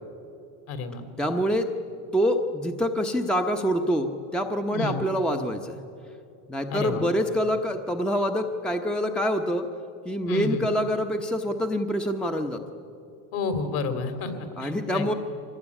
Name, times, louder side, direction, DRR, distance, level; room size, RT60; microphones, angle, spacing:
voice 1, 0.7-1.0 4.7-5.0 6.7-7.0 10.3-10.6 13.3-15.1, left 4 dB, 50° left, 8 dB, 3.3 m, -30 dB
voice 2, 1.2-1.7 2.1-5.8 6.5-9.7 10.0-12.6 14.6-15.1, equal, ahead, 5 dB, 0.9 m, -26 dB
24.0 x 20.0 x 9.9 m, 2.7 s
supercardioid pair, 140°, 45 cm